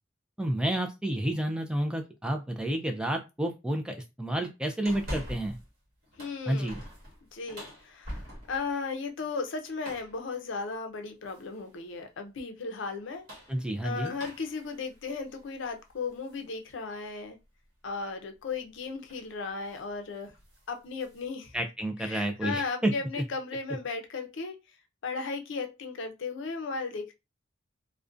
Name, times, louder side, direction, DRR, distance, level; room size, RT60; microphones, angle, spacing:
voice 1, 0.4-5.6 6.5-6.8 13.5-14.1 21.5-22.9, right 1 dB, 5° right, 0.3 m, -30 dB
sound 1, 4.8-5.7 6.0-8.7 9.8-10.2 11.3-11.7 13.0-16.4 16.9-17.0 18.5-18.7 19.1-19.3 19.6-19.9 20.2-21.3, equal, 45° right, 1.1 m, -44 dB
voice 2, 6.2-6.8 7.3-8.2 8.5-13.2 13.8-17.4 17.8-20.3 20.7-21.5 22.0-24.6 25.0-27.1, left 4 dB, 70° left, 0.5 m, -35 dB
2.4 x 2.1 x 2.4 m
head